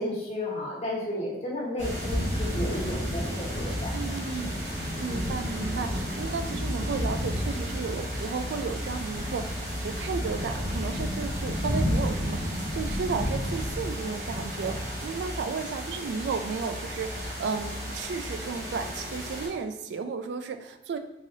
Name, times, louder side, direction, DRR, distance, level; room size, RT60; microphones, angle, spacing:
voice 1, 0.0-4.5 5.0-5.2, left 1 dB, 35° left, -6 dB, 1.2 m, -33 dB
sound 1, 1.8-19.5, equal, 50° right, 1.1 m, -32 dB
voice 2, 3.9-4.5 5.0-21.0, right 5 dB, 80° right, 8 dB, 0.3 m, -33 dB
4.8 x 2.8 x 2.6 m, 0.94 s
head